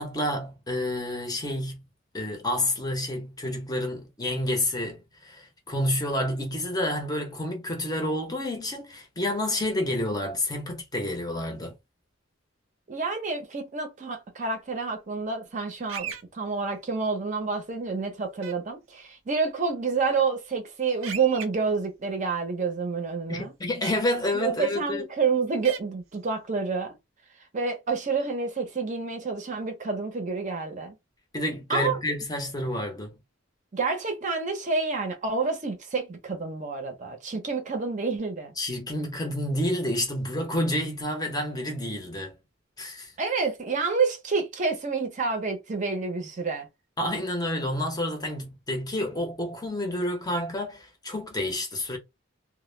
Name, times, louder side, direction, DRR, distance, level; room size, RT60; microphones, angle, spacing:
voice 1, 0.0-1.8 2.1-11.7 23.3-25.0 31.3-33.1 38.6-42.3 42.8-43.1 47.0-52.0, left 1 dB, 20° left, 0.6 m, -29 dB
voice 2, 12.9-23.5 24.3-26.9 27.5-31.0 31.7-32.0 33.7-38.5 43.2-46.7, right 4 dB, 40° right, 0.6 m, -28 dB
sound 1, 15.9-16.2 18.4-18.5 21.0-21.5 23.8-23.9 25.6-25.8, right 8 dB, 90° right, 0.5 m, -35 dB
2.1 x 2.0 x 3.1 m
head